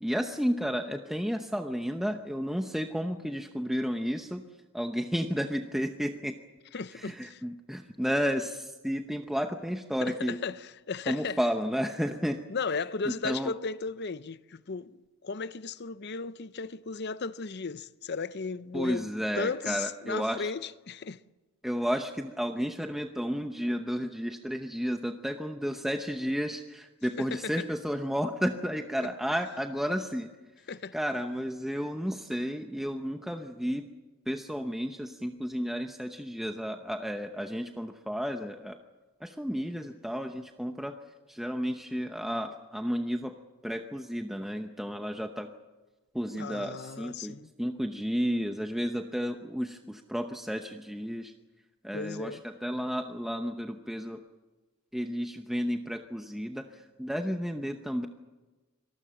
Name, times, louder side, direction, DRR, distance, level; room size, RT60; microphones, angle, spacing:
voice 1, 0.0-4.4 4.7-6.4 6.9-10.4 11.1-12.4 13.2-13.5 18.7-20.5 21.6-30.3 30.9-33.9 34.3-38.8 39.2-41.0 41.3-43.4 43.6-45.5 46.1-51.3 51.8-54.2 54.9-58.1, equal, ahead, 0.8 m, -32 dB
voice 2, 6.7-7.4 10.0-10.6 10.9-11.4 12.5-19.1 19.4-21.2 27.2-27.6 30.7-30.9 46.3-47.5 51.9-52.4, left 4 dB, 50° left, 0.7 m, -35 dB
25.5 x 19.5 x 7.6 m
head